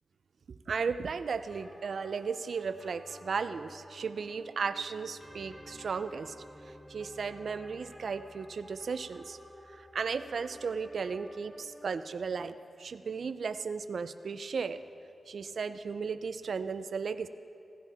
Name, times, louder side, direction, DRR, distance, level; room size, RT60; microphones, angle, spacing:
voice 1, 0.7-6.3 6.9-9.4 9.7-14.8 15.3-17.3, right 5 dB, 75° right, 12 dB, 0.5 m, -35 dB
sound 1, 1.5-11.9, equal, 5° left, 0.9 m, -52 dB
16.5 x 16.0 x 3.6 m, 2.8 s
cardioid pair, 70°, 0 cm